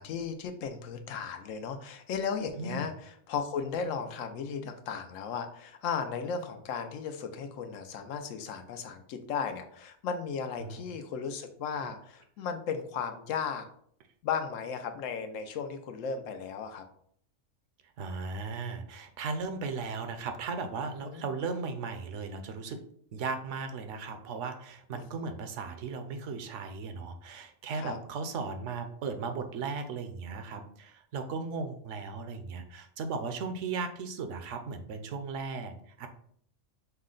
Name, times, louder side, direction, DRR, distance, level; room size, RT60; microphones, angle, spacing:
voice 1, 0.0-13.6 14.2-16.8 21.0-21.3 24.9-25.0 27.7-28.0, left 6 dB, 85° left, 7 dB, 1.0 m, -35 dB
voice 2, 2.6-2.9 10.6-10.8 18.0-22.8 23.1-36.1, right 4 dB, 75° right, 7 dB, 0.9 m, -36 dB
5.6 x 2.1 x 3.7 m, 0.63 s
omnidirectional pair, 1.3 m